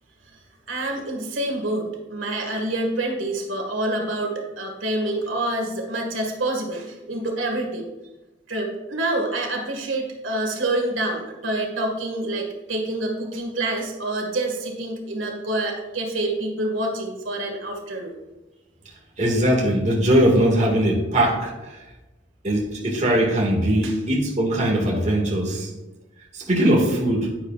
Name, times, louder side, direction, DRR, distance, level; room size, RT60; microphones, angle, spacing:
voice 1, 0.7-7.9 8.5-18.2 23.8-24.0, right 1 dB, 90° right, 1 dB, 1.8 m, -27 dB
voice 2, 19.2-21.5 22.4-25.7 26.3-27.3, right 1 dB, 35° right, -1 dB, 1.8 m, -20 dB
9.8 x 9.8 x 2.4 m, 1.1 s
head